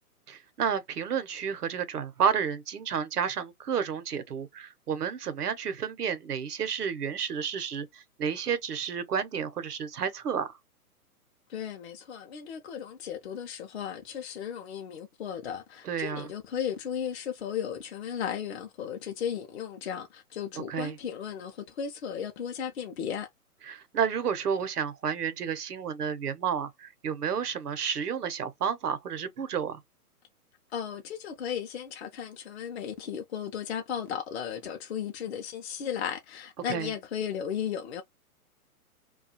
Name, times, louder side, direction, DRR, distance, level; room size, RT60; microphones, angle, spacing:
voice 1, 0.3-10.6 15.8-16.3 20.7-21.0 23.7-29.8 36.7-36.9, right 7 dB, 85° right, 0.7 m, -31 dB
voice 2, 11.5-23.3 30.7-38.0, left 8 dB, 45° left, 0.5 m, -35 dB
2.3 x 2.3 x 2.6 m
hypercardioid pair, 135°, 45 cm